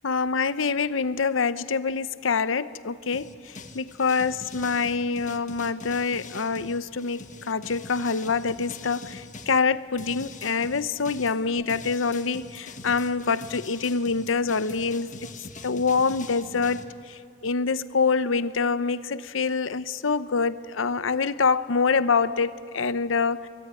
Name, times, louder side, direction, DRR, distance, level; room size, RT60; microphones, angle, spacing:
voice 1, 0.0-3.3 3.7-15.1 15.6-16.8 17.1-23.5, left 4 dB, 70° left, 14 dB, 0.8 m, -25 dB
sound 1, 3.1-9.6 10.0-16.8, left 3 dB, 40° left, 1.5 m, -43 dB
24.0 x 23.5 x 9.1 m, 2.5 s
head